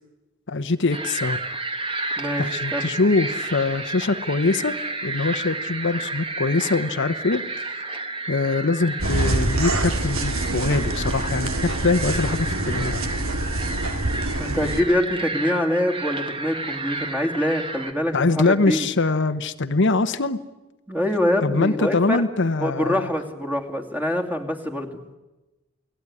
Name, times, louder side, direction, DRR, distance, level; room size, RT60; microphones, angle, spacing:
voice 1, 0.5-1.4 2.4-4.7 5.0-7.7 8.3-13.0 18.1-20.4 21.4-23.1, left 3 dB, 60° left, 10 dB, 1.0 m, -23 dB
sound 1, 0.9-17.9, right 2 dB, 25° right, 1.9 m, -31 dB
voice 2, 2.2-2.5 2.7-2.9 14.4-18.9 20.9-22.3 22.6-25.0, left 1 dB, 10° right, 4 dB, 2.8 m, -24 dB
sound 2, 9.0-14.8, right 2 dB, 85° right, 2.6 m, -26 dB
29.0 x 19.5 x 9.9 m, 1.1 s
head